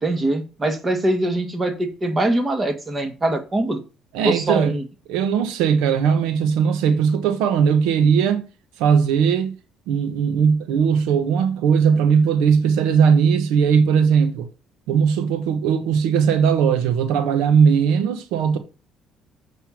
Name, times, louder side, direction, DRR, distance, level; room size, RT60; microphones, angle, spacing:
voice 1, 0.0-3.8 4.2-4.8, right 1 dB, 25° right, 1.9 m, -22 dB
voice 2, 4.1-4.7 5.1-8.4 8.8-9.6 9.9-14.5 14.9-18.6, right 7 dB, 85° right, 1.0 m, -18 dB
7.7 x 5.6 x 5.9 m
cardioid pair, 95°, 0 cm